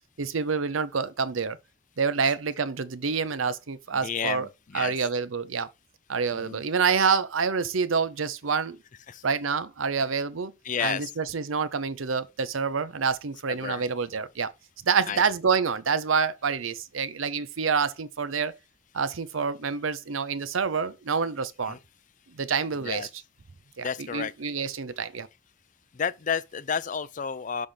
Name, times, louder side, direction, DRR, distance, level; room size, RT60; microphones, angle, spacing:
voice 1, 0.2-1.6 2.0-4.5 4.7-5.7 6.1-8.8 9.2-10.5 10.8-14.5 14.8-18.6 18.9-21.8 22.3-23.1 23.8-25.3, right 5 dB, 85° right, 0.7 m, -27 dB
voice 2, 3.9-4.9 6.3-6.6 9.1-9.2 10.6-11.1 13.5-13.8 15.1-15.2 21.7-21.8 22.8-23.1 23.8-24.3 25.9-27.7, left 7 dB, 40° left, 0.4 m, -31 dB
6.4 x 3.5 x 5.6 m
head